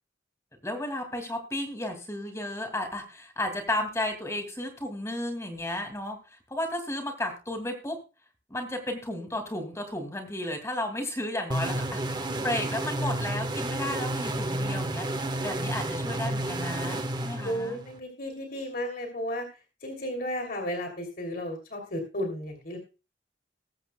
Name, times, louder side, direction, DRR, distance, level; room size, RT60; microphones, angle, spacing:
voice 1, 0.6-6.2 6.5-8.0 8.5-15.1 15.4-17.8, left 1 dB, 15° left, 5 dB, 2.3 m, -33 dB
sound 1, 11.5-18.0, right 1 dB, 25° right, 1.1 m, -31 dB
voice 2, 17.4-19.5 19.8-22.8, equal, 50° left, 3 dB, 2.9 m, -33 dB
20.5 x 8.1 x 2.2 m, 0.31 s
head